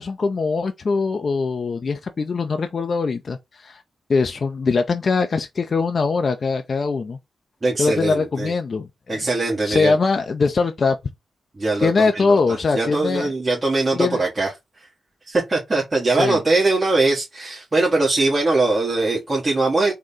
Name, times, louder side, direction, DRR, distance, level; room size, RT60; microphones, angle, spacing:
voice 1, 0.0-3.8 4.1-7.2 7.8-9.2 9.6-11.0 11.8-13.3 13.9-14.2 16.2-16.4, left 4 dB, 55° left, 0.5 m, -22 dB
voice 2, 7.6-8.5 9.1-9.9 11.6-12.4 12.7-14.5 15.3-19.9, right 2 dB, 35° right, 1.5 m, -21 dB
3.8 x 2.2 x 3.7 m
supercardioid pair, 45°, 0 cm